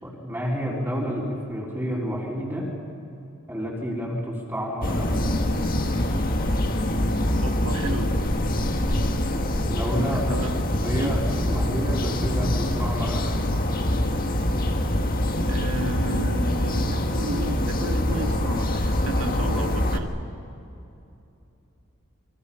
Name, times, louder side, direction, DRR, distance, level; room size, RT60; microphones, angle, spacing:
voice 1, 0.0-2.7 3.5-5.5 9.7-10.3 10.8-13.4, equal, 10° right, -5 dB, 3.8 m, -29 dB
sound 1, 4.8-20.0, left 1 dB, 40° left, 1.6 m, -24 dB
voice 2, 7.4-8.1 10.1-10.5 10.9-11.2 15.4-20.1, right 2 dB, 85° right, 5 dB, 1.8 m, -33 dB
28.0 x 24.0 x 5.7 m, 2.7 s
head